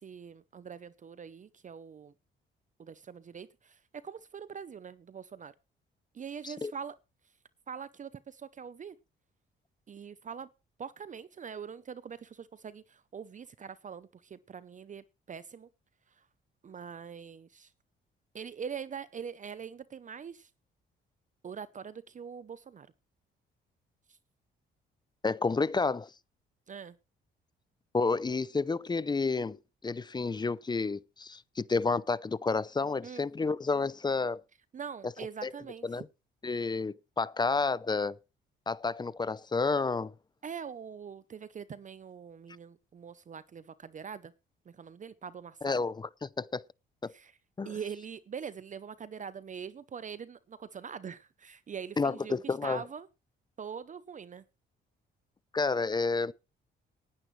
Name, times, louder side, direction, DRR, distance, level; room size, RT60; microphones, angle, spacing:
voice 1, 0.0-2.1 2.8-5.5 6.1-7.0 7.7-9.0 9.9-10.5 10.8-15.7 16.1-16.3 16.6-17.7 18.3-20.5 21.4-22.9 24.1-24.2 26.7-27.0 33.0-33.3 34.7-36.0 40.4-44.3 44.7-45.8 47.1-47.4 47.6-53.1 53.6-54.4, right 7 dB, 40° right, 0.7 m, -43 dB
voice 2, 25.2-26.1 27.9-34.4 35.4-35.5 35.8-36.0 36.4-38.2 38.7-40.1 45.6-45.9 46.2-46.6 47.0-47.1 47.6-47.7 52.0-52.8 55.5-56.3, left 4 dB, 20° left, 0.6 m, -30 dB
18.5 x 10.0 x 3.2 m
cardioid pair, 90°, 20 cm